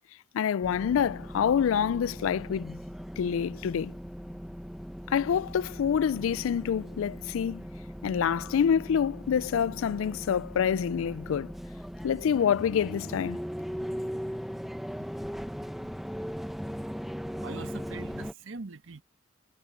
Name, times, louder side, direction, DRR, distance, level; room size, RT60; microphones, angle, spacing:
voice 1, 0.3-2.8 3.2-3.9 5.1-7.6 8.0-11.5 12.0-13.4, left 8 dB, 85° left, 0.3 m, -27 dB
sound 1, 0.6-18.3, equal, ahead, 0.9 m, -39 dB
voice 2, 17.4-19.0, right 3 dB, 75° right, 1.1 m, -42 dB
head